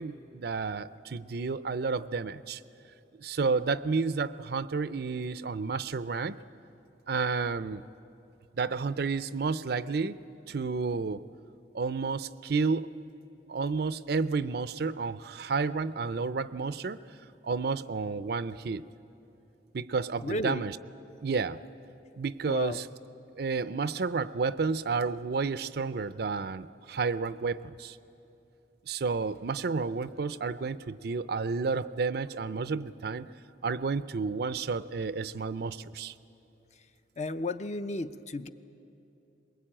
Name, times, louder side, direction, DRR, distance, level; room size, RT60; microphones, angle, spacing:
voice 1, 0.0-2.6 3.2-6.4 7.1-7.8 8.6-10.2 10.5-11.2 11.7-12.9 13.5-17.0 17.4-18.8 19.7-20.7 21.2-21.6 22.2-22.9 23.4-28.0 28.9-33.3 33.6-36.1, right 4 dB, 55° right, 15 dB, 0.5 m, -31 dB
voice 2, 20.2-20.7 22.5-22.8 37.2-38.5, left 2 dB, 35° left, 10 dB, 0.6 m, -33 dB
22.5 x 21.5 x 8.9 m, 2.9 s
head